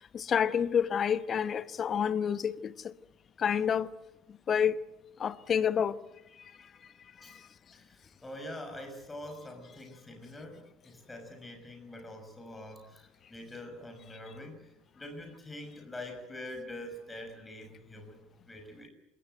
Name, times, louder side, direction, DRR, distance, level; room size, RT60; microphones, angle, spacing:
voice 1, 0.3-2.5 3.4-3.9 4.5-4.7 5.2-5.9, left 8 dB, 35° left, 1.1 m, -28 dB
voice 2, 7.7-18.9, left 1 dB, 10° left, 5.9 m, -45 dB
27.0 x 22.0 x 9.1 m
figure-of-eight pair, 65°, 0 cm